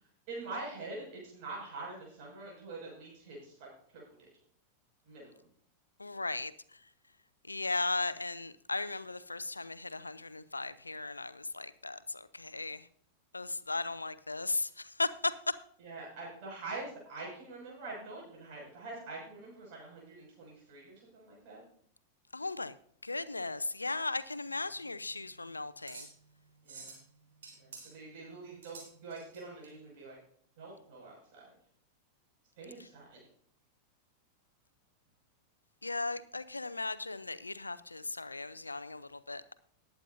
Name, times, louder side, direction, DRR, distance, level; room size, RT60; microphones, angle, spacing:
voice 1, 0.3-3.7 3.9-4.3 5.1-5.3 15.8-21.6 26.6-27.0 27.6-30.2 30.6-31.4 32.6-33.2, right 3 dB, 45° right, -3 dB, 6.0 m, -45 dB
voice 2, 6.0-6.5 7.5-12.8 13.3-15.3 22.3-22.8 23.0-26.1 35.8-39.5, left 3 dB, 80° left, 16 dB, 0.5 m, -36 dB
sound 1, 24.5-29.7, right 4 dB, 65° right, 3.8 m, -52 dB
19.5 x 9.2 x 2.7 m, 0.62 s
figure-of-eight pair, 90°, 0 cm